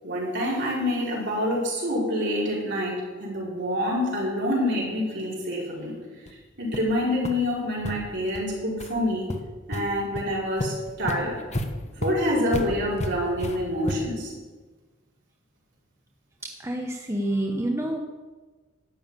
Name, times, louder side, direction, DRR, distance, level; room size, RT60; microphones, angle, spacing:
voice 1, 0.0-6.0 6.6-9.3 9.7-11.4 12.0-14.3, left 1 dB, 55° right, -5 dB, 5.1 m, -27 dB
sound 1, 6.3-6.4 6.7-6.9 7.2-7.3 7.8-7.9 8.3-8.4 8.8-8.9 9.3-9.8 10.2-10.3 10.6-14.2, left 1 dB, 35° left, 1.1 m, -32 dB
voice 2, 16.4-18.0, right 1 dB, 15° right, 2 dB, 0.9 m, -28 dB
12.5 x 7.1 x 8.9 m, 1.3 s
head